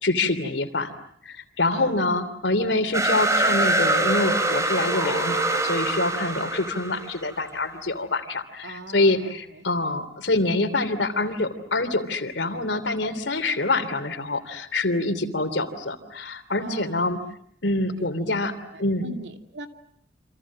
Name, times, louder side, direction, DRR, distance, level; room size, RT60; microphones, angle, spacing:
voice 1, 0.0-0.9 1.2-17.2 17.6-18.5 18.8-19.1, left 2 dB, 85° left, 10 dB, 3.0 m, -25 dB
voice 2, 1.7-2.1 8.6-9.7 16.6-17.0 17.9-18.3 18.7-19.7, right 3 dB, 85° right, 6 dB, 2.6 m, -39 dB
sound 1, 2.9-7.4, right 2 dB, 15° right, 2.9 m, -24 dB
28.5 x 27.0 x 7.4 m, 0.65 s
head